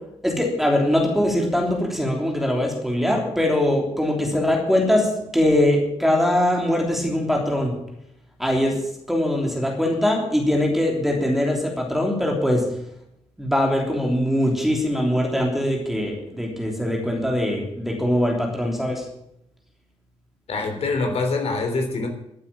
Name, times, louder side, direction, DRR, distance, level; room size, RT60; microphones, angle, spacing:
voice 1, 0.2-7.7 8.4-8.8 9.1-12.6 13.4-19.0, left 1 dB, ahead, 0 dB, 3.3 m, -22 dB
voice 2, 20.5-22.1, left 3 dB, 60° left, 3 dB, 3.8 m, -24 dB
13.0 x 8.8 x 8.8 m, 0.78 s
wide cardioid pair, 160°, 12 cm